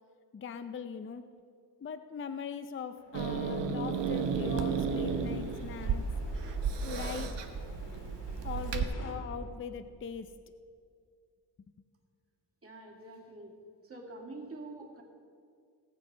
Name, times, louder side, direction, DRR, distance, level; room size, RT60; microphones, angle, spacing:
voice 1, 0.3-1.2 1.8-6.1 6.8-7.3 8.4-10.3, left 6 dB, 30° left, 10 dB, 0.5 m, -40 dB
sound 1, 3.0-9.1, left 2 dB, 75° left, 2.3 m, -52 dB
Growling / Hiss, 3.1-8.8, right 5 dB, 85° right, 1.1 m, -33 dB
voice 2, 12.6-13.5 13.8-15.0, right 2 dB, 35° right, 0 dB, 2.2 m, -46 dB
18.0 x 7.4 x 5.3 m, 2.2 s
wide cardioid pair, 120°, 41 cm